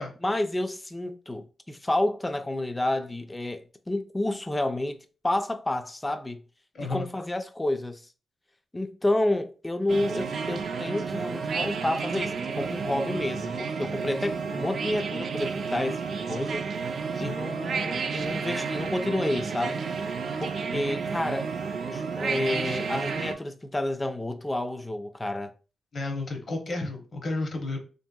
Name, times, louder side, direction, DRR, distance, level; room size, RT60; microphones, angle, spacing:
voice 1, 0.2-5.0 5.2-6.4 6.9-8.0 8.7-16.6 17.2-19.9 20.4-21.5 21.9-25.5, left 1 dB, 15° left, 0.3 m, -30 dB
voice 2, 6.7-7.1 17.1-17.4 20.6-20.9 25.9-27.8, left 2 dB, 50° left, 0.7 m, -32 dB
sound 1, 9.9-23.3, right 5 dB, 65° right, 0.3 m, -31 dB
2.8 x 2.7 x 2.2 m
cardioid pair, 100°, 0 cm